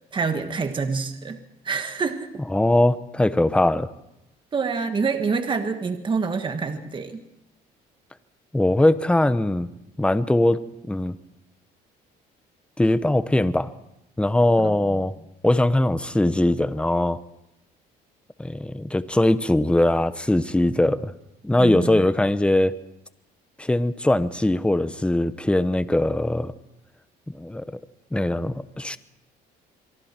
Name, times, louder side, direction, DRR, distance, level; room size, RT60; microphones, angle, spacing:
voice 1, 0.1-1.4 1.6-2.3 4.5-7.2 14.6-15.0 21.6-22.0, right 5 dB, 30° right, 7 dB, 1.7 m, -27 dB
voice 2, 2.5-3.9 8.5-9.7 10.0-10.6 10.9-11.1 12.8-13.7 14.2-15.1 15.4-17.2 18.4-21.1 21.4-22.7 23.6-26.5 27.3-27.6 28.1-29.0, left 1 dB, 5° left, 13 dB, 1.0 m, -21 dB
26.0 x 23.0 x 4.5 m, 0.86 s
cardioid pair, 110°, 17 cm